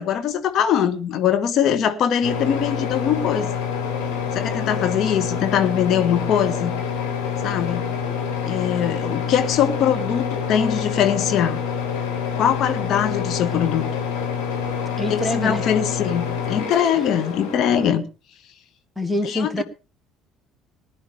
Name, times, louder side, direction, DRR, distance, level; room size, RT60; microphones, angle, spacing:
voice 1, 0.0-3.5 4.3-6.7 7.4-7.9 8.4-11.6 12.4-13.9 15.1-18.0 19.2-19.6, left 9 dB, 50° left, 1.6 m, -22 dB
sound 1, 2.2-17.9, left 7 dB, 70° left, 4.4 m, -27 dB
voice 2, 15.0-15.6 19.0-19.6, left 1 dB, ahead, 1.6 m, -25 dB
20.0 x 10.5 x 3.4 m
figure-of-eight pair, 55°, 0 cm